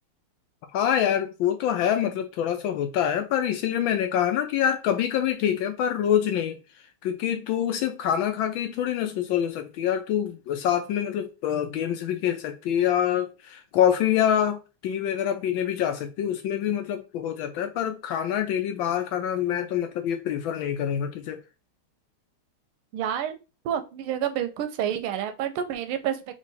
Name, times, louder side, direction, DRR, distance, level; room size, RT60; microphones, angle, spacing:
voice 1, 0.7-6.6 7.0-21.4, left 10 dB, 75° left, 1.2 m, -26 dB
voice 2, 22.9-23.4 23.6-26.2, right 9 dB, 85° right, 1.5 m, -28 dB
3.6 x 3.1 x 4.0 m
omnidirectional pair, 2.3 m